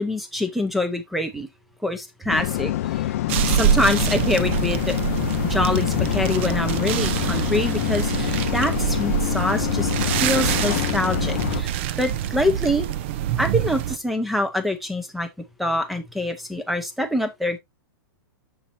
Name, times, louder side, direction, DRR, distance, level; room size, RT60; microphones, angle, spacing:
voice 1, 0.0-1.5 1.8-3.1 3.5-5.0 5.5-9.9 10.2-12.9 13.4-15.3 15.6-17.6, left 1 dB, ahead, 0.7 m, -25 dB
sound 1, 2.3-11.6, left 13 dB, 40° left, 0.4 m, -25 dB
sound 2, 3.3-14.0, right 11 dB, 30° right, 0.4 m, -25 dB
7.2 x 6.7 x 2.6 m
hypercardioid pair, 170°, 12 cm